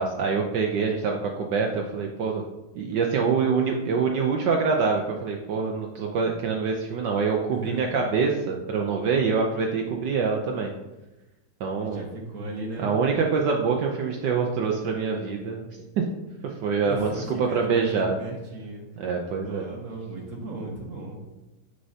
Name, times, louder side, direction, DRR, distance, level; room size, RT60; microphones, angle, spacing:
voice 1, 0.0-2.4 2.7-10.7 11.6-12.0 12.8-16.0 16.4-18.2 19.0-19.7, right 5 dB, 70° right, 1 dB, 1.2 m, -25 dB
voice 2, 7.5-8.4 11.8-12.9 16.9-18.9 19.4-21.2, right 2 dB, 45° right, 0 dB, 1.3 m, -36 dB
8.1 x 6.4 x 2.8 m, 1.0 s
omnidirectional pair, 2.2 m